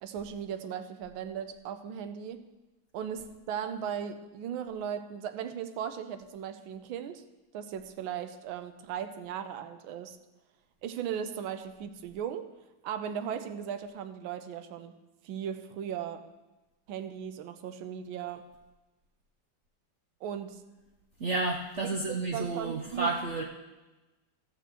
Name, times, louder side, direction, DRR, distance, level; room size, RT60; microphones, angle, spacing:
voice 1, 0.0-2.5 2.9-7.2 7.5-10.2 10.8-12.5 12.8-14.9 15.2-16.3 16.9-18.4 20.2-20.6 21.8-23.2, right 8 dB, 85° right, 9 dB, 1.5 m, -37 dB
voice 2, 21.2-23.4, right 3 dB, 65° right, 1 dB, 0.7 m, -31 dB
13.5 x 4.6 x 7.5 m, 1.1 s
omnidirectional pair, 2.2 m